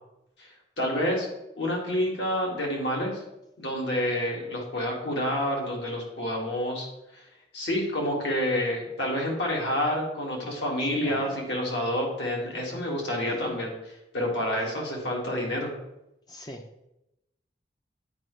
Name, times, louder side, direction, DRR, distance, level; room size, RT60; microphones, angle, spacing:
voice 1, 0.8-1.3 1.6-3.2 3.6-6.9 7.1-7.2 7.5-13.7 14.1-15.7, left 1 dB, 80° left, -2 dB, 1.9 m, -28 dB
voice 2, 10.9-11.5 13.3-13.6 16.3-16.7, left 1 dB, 25° left, 4 dB, 0.5 m, -41 dB
9.2 x 4.7 x 3.2 m, 0.88 s
head